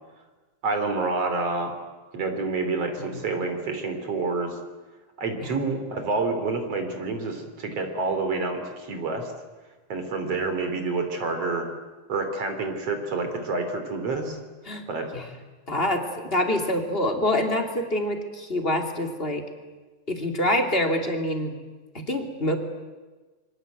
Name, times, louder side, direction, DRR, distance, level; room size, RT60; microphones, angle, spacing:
voice 1, 0.6-1.7 2.1-4.6 5.2-9.3 9.9-11.7 12.1-14.4 14.9-15.1, right 3 dB, 50° right, 6 dB, 4.1 m, -28 dB
voice 2, 15.7-19.4 20.1-21.6 21.9-22.6, left 1 dB, 20° left, 4 dB, 2.6 m, -26 dB
26.5 x 24.5 x 8.2 m, 1.3 s
omnidirectional pair, 3.6 m